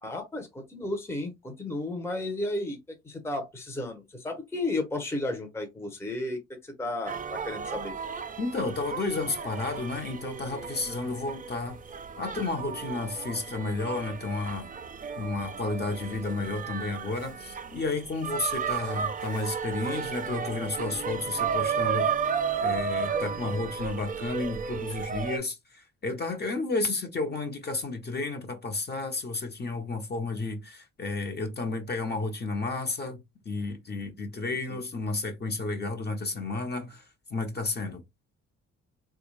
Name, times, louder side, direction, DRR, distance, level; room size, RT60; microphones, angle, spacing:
voice 1, 0.0-2.8 3.0-7.9 34.4-34.8, left 2 dB, 10° left, 0.8 m, -33 dB
sound 1, 7.1-25.4, right 6 dB, 30° right, 0.4 m, -33 dB
voice 2, 8.4-11.8 12.2-14.7 15.2-22.1 22.6-37.0 37.3-38.0, left 3 dB, 35° left, 1.0 m, -32 dB
3.4 x 2.4 x 3.1 m
cardioid pair, 90°, 30 cm